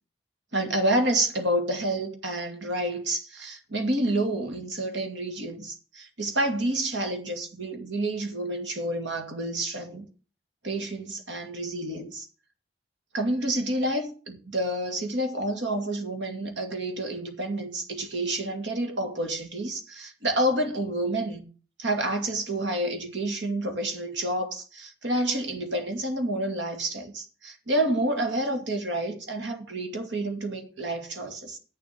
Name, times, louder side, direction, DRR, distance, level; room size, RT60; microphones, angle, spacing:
voice 1, 0.5-10.0 10.6-12.3 13.1-21.5 21.8-31.6, right 1 dB, 90° right, 2.4 m, -29 dB
8.3 x 7.4 x 7.5 m
head